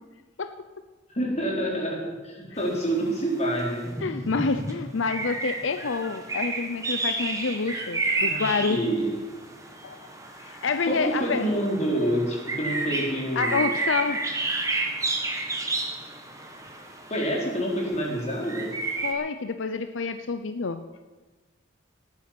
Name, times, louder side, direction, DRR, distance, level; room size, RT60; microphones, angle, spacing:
voice 1, 1.1-3.9 8.1-9.1 10.9-13.6 17.1-18.7, right 1 dB, 35° left, -1 dB, 3.8 m, -27 dB
sound 1, 2.6-19.1, right 3 dB, 15° right, 1.8 m, -31 dB
voice 2, 4.0-8.8 9.8-10.0 10.4-11.4 13.4-14.2 19.0-20.8, left 4 dB, 80° left, 9 dB, 0.7 m, -28 dB
18.0 x 9.8 x 6.0 m, 1.2 s
head